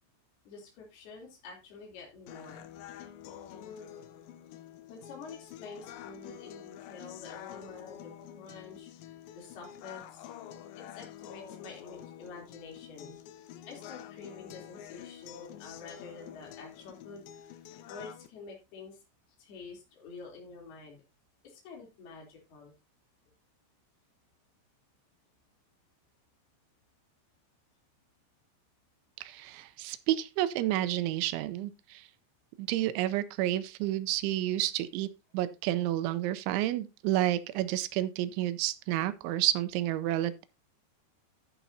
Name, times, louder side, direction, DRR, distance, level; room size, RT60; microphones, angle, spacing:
voice 1, 0.5-2.7 3.6-4.0 4.9-10.3 10.8-13.2 13.7-17.4 17.9-19.0 19.4-21.0 21.4-22.7, left 4 dB, 60° left, 5.2 m, -48 dB
sound 1, 2.3-18.3, left 10 dB, 85° left, 2.1 m, -48 dB
voice 2, 29.2-32.1 32.6-35.1 35.3-40.5, right 14 dB, 90° right, 3.1 m, -30 dB
11.5 x 10.0 x 2.7 m
omnidirectional pair, 5.3 m